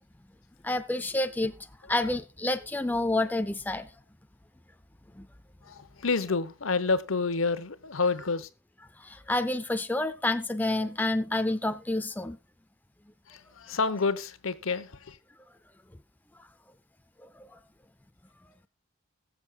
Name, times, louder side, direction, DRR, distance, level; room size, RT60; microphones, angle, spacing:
voice 1, 0.6-1.5 1.9-3.9 5.1-5.3 9.0-12.4 17.3-17.6, left 2 dB, 10° left, 0.4 m, -29 dB
voice 2, 5.6-8.5 13.3-15.2, left 4 dB, 80° left, 0.9 m, -29 dB
20.5 x 7.2 x 2.3 m
head